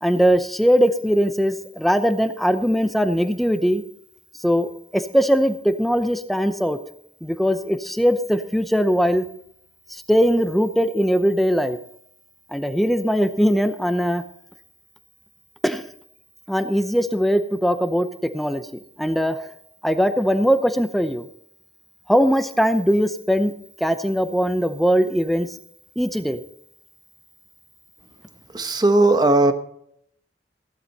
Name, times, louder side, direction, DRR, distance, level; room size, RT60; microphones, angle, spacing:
voice 1, 0.0-3.8 4.4-6.8 7.2-9.2 9.9-11.8 12.5-14.2 15.6-15.8 16.5-18.1 18.3-18.7 19.0-19.5 19.8-21.3 22.1-23.5 23.8-25.5 26.0-26.4, equal, ahead, 9 dB, 0.7 m, -20 dB
voice 2, 28.5-29.5, right 2 dB, 25° right, 9 dB, 1.0 m, -17 dB
16.0 x 11.5 x 4.2 m, 0.70 s
head